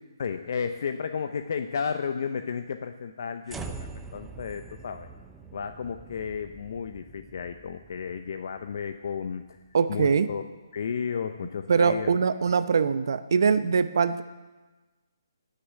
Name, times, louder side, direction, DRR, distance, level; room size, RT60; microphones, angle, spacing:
voice 1, 0.2-5.1 5.5-9.6 9.9-10.4 10.7-12.1, left 6 dB, 55° left, 8 dB, 0.7 m, -33 dB
sound 1, 3.5-9.8, right 4 dB, 5° right, 0.6 m, -44 dB
voice 2, 9.7-10.3 11.7-14.2, right 5 dB, 60° right, 12 dB, 0.8 m, -23 dB
17.0 x 6.7 x 9.0 m, 1.2 s
hypercardioid pair, 160°, 2 cm